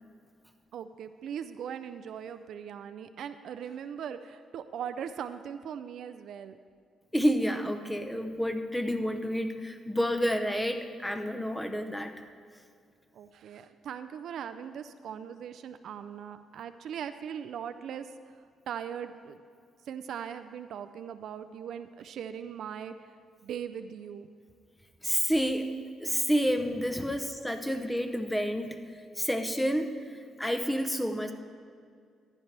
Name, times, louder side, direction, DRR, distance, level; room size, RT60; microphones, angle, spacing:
voice 1, 0.7-6.6 13.1-18.1 18.7-19.4 19.9-22.9 23.4-24.3, right 8 dB, 70° right, 10 dB, 0.4 m, -40 dB
voice 2, 7.1-12.1 25.0-25.7 26.0-28.8 29.2-29.9 30.4-31.3, equal, 5° left, 7 dB, 0.9 m, -29 dB
14.5 x 10.5 x 3.4 m, 2.3 s
cardioid pair, 90°, 0 cm